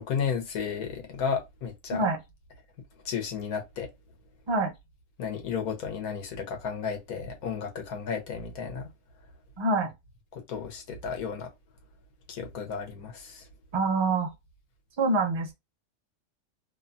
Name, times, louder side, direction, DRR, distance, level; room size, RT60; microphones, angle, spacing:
voice 1, 0.0-2.1 3.0-3.9 5.2-8.9 10.3-11.5 12.3-13.5, left 6 dB, 90° left, 1.4 m, -33 dB
voice 2, 9.6-9.9 13.7-14.3 15.0-15.5, right 3 dB, 35° right, 0.5 m, -25 dB
3.1 x 2.1 x 2.5 m
omnidirectional pair, 1.5 m